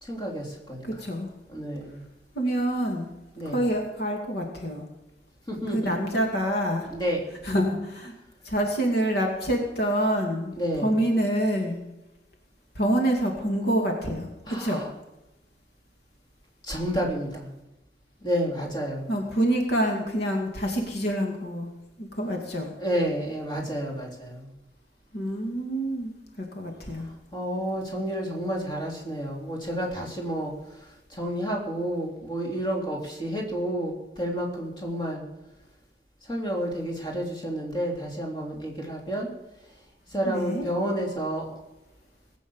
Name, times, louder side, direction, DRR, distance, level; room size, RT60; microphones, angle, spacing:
voice 1, 0.0-0.8 1.5-2.0 3.4-3.6 5.5-5.9 6.9-7.2 10.6-11.0 14.5-14.9 16.6-17.5 18.2-19.1 22.8-24.5 26.9-35.2 36.2-39.3 40.1-41.5, equal, 25° left, -1 dB, 3.3 m, -30 dB
voice 2, 0.8-1.3 2.3-3.1 3.4-4.9 5.7-6.9 7.4-8.1 8.4-11.8 12.7-14.9 19.1-21.7 22.0-22.7 25.1-27.1 40.2-40.7, right 1 dB, 60° left, 2 dB, 2.4 m, -27 dB
19.0 x 8.4 x 7.2 m, 0.99 s
head